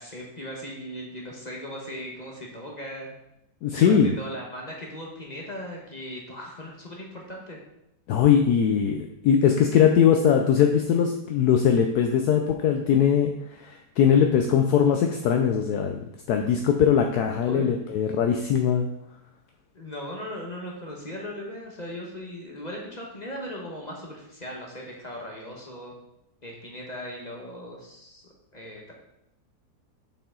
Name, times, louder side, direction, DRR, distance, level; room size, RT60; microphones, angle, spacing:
voice 1, 0.0-3.1 3.7-7.6 17.4-17.8 19.7-25.9 26.4-28.9, equal, 30° left, -1 dB, 1.1 m, -38 dB
voice 2, 3.6-4.2 8.1-16.0 16.3-18.9, left 8 dB, 70° left, 4 dB, 1.0 m, -21 dB
6.8 x 5.6 x 3.7 m, 0.81 s
omnidirectional pair, 1.8 m